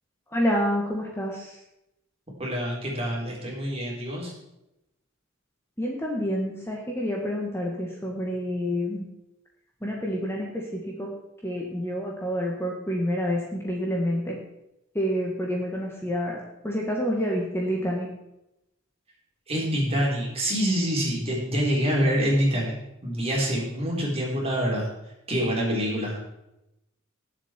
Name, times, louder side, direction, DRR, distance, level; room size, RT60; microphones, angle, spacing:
voice 1, 0.3-1.6 5.8-9.0 9.8-11.1 11.4-14.4 14.9-16.4 16.6-18.1, equal, 10° left, -2 dB, 1.8 m, -28 dB
voice 2, 2.4-4.3 19.5-22.7 23.0-24.9 25.3-26.2, equal, 30° right, -2 dB, 4.1 m, -26 dB
19.0 x 7.6 x 4.6 m, 0.88 s
head